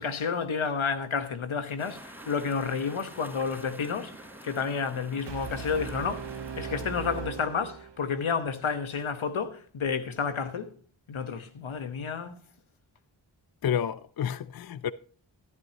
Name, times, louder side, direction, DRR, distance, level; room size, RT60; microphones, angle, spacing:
voice 1, 0.0-4.1 4.4-10.7 11.1-12.4, left 5 dB, 80° left, 1.3 m, -30 dB
sound 1, 1.8-7.2, right 1 dB, 5° right, 3.8 m, -47 dB
Brass instrument, 5.3-8.4, right 6 dB, 60° right, 0.8 m, -39 dB
voice 2, 13.6-14.9, left 9 dB, 50° left, 0.5 m, -30 dB
13.5 x 12.5 x 2.9 m
cardioid pair, 40°, 48 cm